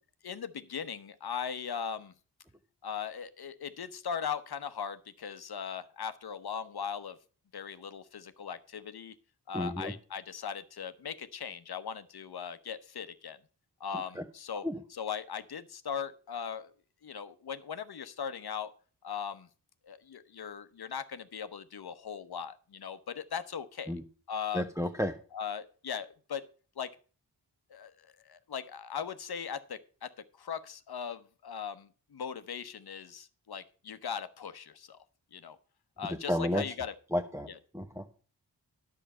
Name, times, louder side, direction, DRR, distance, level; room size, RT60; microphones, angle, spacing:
voice 1, 0.2-2.1 2.8-7.2 7.5-9.1 9.5-13.4 13.8-14.6 15.0-16.7 17.0-18.7 19.0-19.5 19.8-23.9 24.3-24.6 25.3-26.5 26.8-27.0 27.7-30.1 30.4-35.0 35.3-35.6 36.0-36.9, left 7 dB, 65° left, 12 dB, 1.0 m, -39 dB
voice 2, 9.5-9.9 13.9-14.2 14.6-14.8 23.9-24.0 24.5-25.2 36.0-36.7 37.1-37.5 37.7-38.0, equal, 5° right, 4 dB, 1.0 m, -32 dB
10.0 x 7.4 x 5.5 m, 0.39 s
cardioid pair, 40°, 42 cm